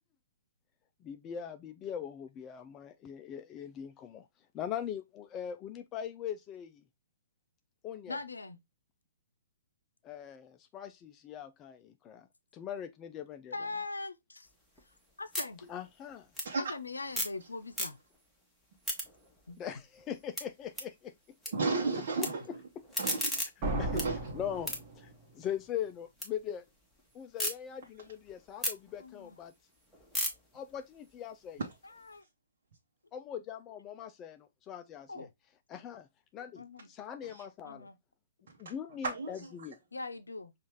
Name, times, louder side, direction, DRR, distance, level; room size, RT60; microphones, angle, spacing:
voice 1, 1.0-4.3 4.5-6.8 7.8-8.2 10.0-12.3 12.5-13.5 15.7-16.3 19.6-21.1 21.5-21.6 22.2-22.3 23.8-24.0 24.3-26.7 27.1-29.5 30.5-31.6 33.1-35.3 35.7-36.1 36.3-37.9 38.6-39.8, left 9 dB, 25° left, 0.3 m, -41 dB
voice 2, 8.1-8.6 13.5-14.5 15.2-15.7 16.6-18.0 19.5-19.6 29.0-29.4 31.8-32.2 35.1-35.3 36.6-36.9 37.6-38.0 39.9-40.5, left 3 dB, 80° left, 0.6 m, -41 dB
sound 1, 14.5-17.4 17.7-18.3 18.6-21.5 21.8-22.3 22.7-26.3 26.7-27.5 28.0-32.1, left 1 dB, ahead, 1.0 m, -39 dB
voice 3, 21.5-22.4 23.0-23.4 23.9-24.2 37.2-37.4 38.6-38.7 39.0-39.5, right 3 dB, 55° right, 0.9 m, -33 dB
sound 2, 23.6-25.4, right 1 dB, 30° right, 1.2 m, -35 dB
5.4 x 2.4 x 3.0 m
figure-of-eight pair, 125°, 0 cm